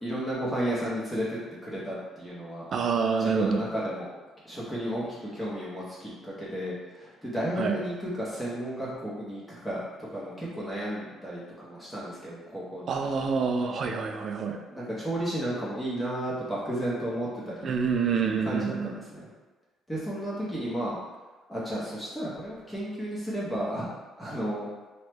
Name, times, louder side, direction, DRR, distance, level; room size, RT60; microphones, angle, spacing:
voice 1, 0.0-2.6 3.2-4.1 4.4-13.2 14.7-17.7 18.3-19.3 19.9-21.0 21.5-23.9 24.2-24.7, equal, 10° left, -8 dB, 0.7 m, -33 dB
voice 2, 2.7-3.6 7.6-7.8 12.9-14.6 17.6-18.9, right 5 dB, 45° right, 4 dB, 0.3 m, -27 dB
3.0 x 2.1 x 3.3 m, 1.2 s
cardioid pair, 140°, 0 cm